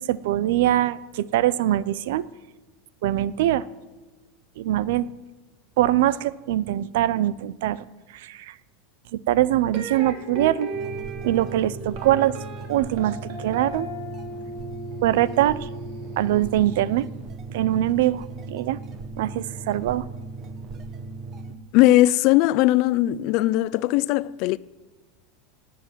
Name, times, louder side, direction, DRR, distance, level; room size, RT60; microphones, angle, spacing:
voice 1, 0.0-2.3 3.0-3.6 4.6-5.1 5.8-7.8 8.1-8.5 9.1-10.7 11.2-12.4 12.7-13.9 15.0-15.7 16.2-17.1 17.5-18.8 19.2-20.1, right 13 dB, 70° right, 0.6 m, -23 dB
sound 1, 9.7-16.8, right 2 dB, 50° right, 2.9 m, -36 dB
sound 2, 10.7-21.5, right 3 dB, 25° right, 1.1 m, -37 dB
voice 2, 21.7-24.6, left 16 dB, 45° left, 0.4 m, -19 dB
18.0 x 8.4 x 9.4 m
supercardioid pair, 175°, 0 cm